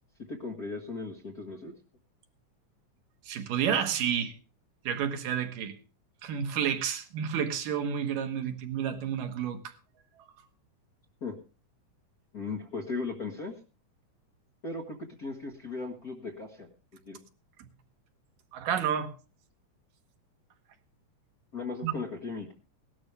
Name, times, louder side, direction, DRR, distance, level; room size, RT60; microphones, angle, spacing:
voice 1, 0.3-1.7 11.2-11.4 12.3-13.5 14.6-16.7 17.1-17.2 21.5-22.5, left 3 dB, 50° left, 1.1 m, -37 dB
voice 2, 3.3-4.4 4.8-5.8 6.2-9.7 18.5-19.1 21.8-21.9, right 8 dB, 85° right, 3.1 m, -30 dB
18.0 x 12.0 x 3.3 m
omnidirectional pair, 3.7 m